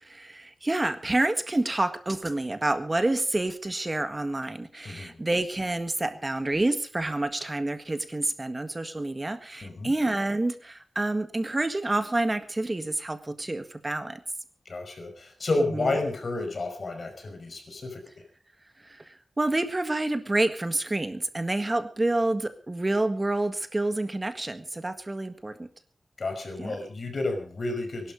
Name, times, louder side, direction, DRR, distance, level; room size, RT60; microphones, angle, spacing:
voice 1, 0.0-14.2 15.7-15.9 18.8-25.7 26.6-26.7, right 2 dB, 30° right, 9 dB, 1.6 m, -28 dB
voice 2, 4.8-5.2 9.6-9.9 14.7-18.0 26.2-28.1, left 2 dB, 65° left, 4 dB, 5.5 m, -31 dB
22.0 x 12.0 x 5.3 m, 0.41 s
wide cardioid pair, 85°, 0 cm